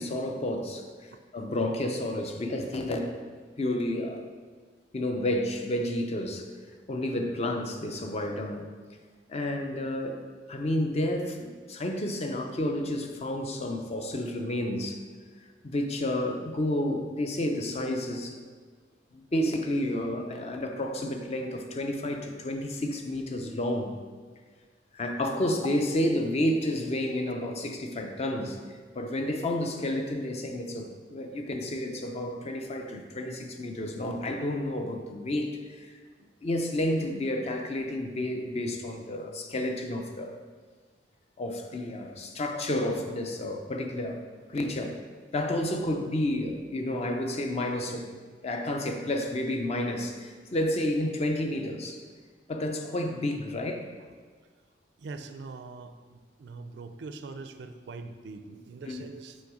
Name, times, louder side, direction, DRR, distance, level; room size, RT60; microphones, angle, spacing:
voice 1, 0.0-3.2 3.6-4.2 4.9-6.5 6.9-8.7 9.3-10.2 10.5-15.0 15.6-18.4 19.1-24.0 24.9-28.6 28.9-35.9 36.4-40.3 41.4-44.2 44.5-45.0 45.3-48.1 48.4-52.0 52.5-53.9 58.9-59.1, left 1 dB, 35° left, 4 dB, 0.5 m, -30 dB
voice 2, 55.0-59.4, right 3 dB, 70° right, 9 dB, 0.4 m, -43 dB
6.4 x 3.1 x 4.8 m, 1.5 s
head